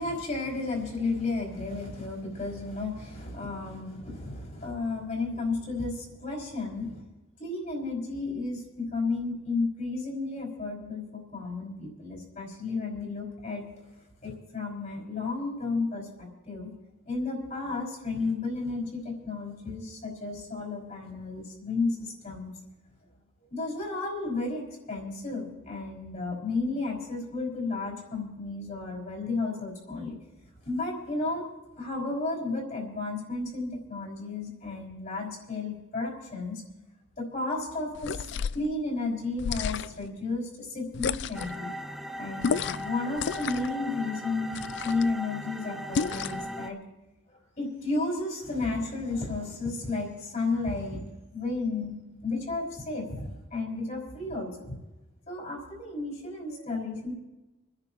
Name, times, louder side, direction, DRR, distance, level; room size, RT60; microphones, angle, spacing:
voice 1, 0.0-7.0 7.4-13.6 14.2-16.7 17.0-22.5 23.5-30.2 30.6-31.4 31.8-36.6 37.2-38.2 38.5-41.7 42.2-44.6 44.8-46.8 47.6-51.0 51.3-51.9 52.2-54.7 55.3-57.1, left 3 dB, 40° left, -2 dB, 5.1 m, -33 dB
sound 1, 37.9-38.7 39.4-40.1 40.9-41.6 42.4-42.9 43.2-43.7 44.5-45.1 45.9-46.5, left 6 dB, 55° left, 0.3 m, -31 dB
sound 2, 41.3-46.7, equal, ahead, 0.6 m, -38 dB
29.5 x 10.5 x 3.0 m, 1.0 s
head